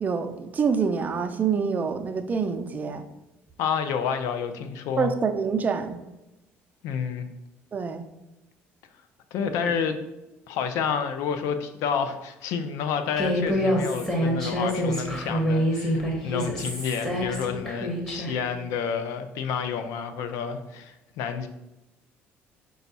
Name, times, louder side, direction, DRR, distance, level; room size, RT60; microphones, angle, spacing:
voice 1, 0.0-3.1 5.0-6.0 7.7-8.0 9.4-9.7, right 5 dB, 30° right, 7 dB, 0.5 m, -26 dB
voice 2, 3.6-5.1 6.8-7.3 9.3-10.0 10.5-21.5, left 7 dB, 80° left, 9 dB, 0.5 m, -29 dB
Human voice, 13.2-18.4, equal, 10° left, 1.3 m, -26 dB
5.2 x 2.4 x 4.0 m, 0.97 s
cardioid pair, 100°, 5 cm